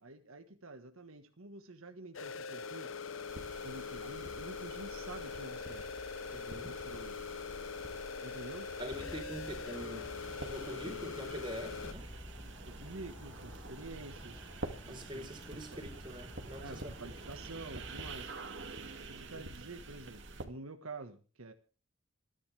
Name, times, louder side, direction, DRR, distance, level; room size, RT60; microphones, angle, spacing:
voice 1, 0.0-2.9 3.6-5.9 6.6-7.3 8.2-8.7 10.9-11.0 11.7-11.8 12.4-14.5 14.8-15.8 16.6-18.3 19.1-21.5, right 2 dB, 75° right, 6 dB, 1.6 m, -48 dB
sound 1, 2.1-11.9, left 5 dB, 65° left, 0.8 m, -42 dB
sound 2, 3.3-20.4, right 3 dB, 55° right, 2.4 m, -48 dB
voice 2, 6.3-6.7 8.8-12.1 14.7-17.3 19.3-19.5, equal, 20° right, 3 dB, 4.2 m, -45 dB
Insect / Frog, 8.9-18.1, equal, 25° left, 7.3 m, -51 dB
26.5 x 11.0 x 3.5 m, 0.36 s
head